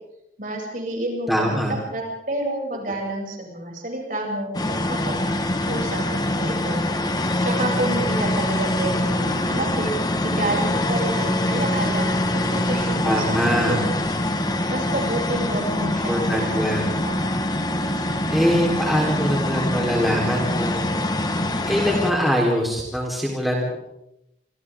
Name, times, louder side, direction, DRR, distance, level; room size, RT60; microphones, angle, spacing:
voice 1, 0.4-1.6 1.9-5.2 5.6-6.8 7.4-9.9 10.2-13.9 14.7-17.2, right 1 dB, 50° right, -1 dB, 7.3 m, -29 dB
voice 2, 1.3-1.8 13.0-13.8 16.1-16.8 18.3-20.9 21.7-23.8, equal, ahead, -2 dB, 3.9 m, -23 dB
sound 1, 4.5-22.1, left 1 dB, 25° left, 1.5 m, -24 dB
28.0 x 26.5 x 3.7 m, 0.84 s
head